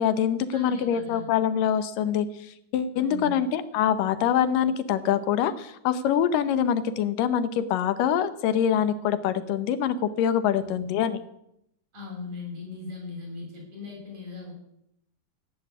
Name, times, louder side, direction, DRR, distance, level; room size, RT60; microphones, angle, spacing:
voice 1, 0.0-11.2, left 9 dB, 90° left, 11 dB, 2.6 m, -25 dB
voice 2, 0.5-1.3 2.9-3.4 10.7-11.0 11.9-14.5, left 4 dB, 55° right, 0 dB, 7.6 m, -39 dB
16.5 x 8.3 x 8.6 m, 0.78 s
omnidirectional pair, 3.7 m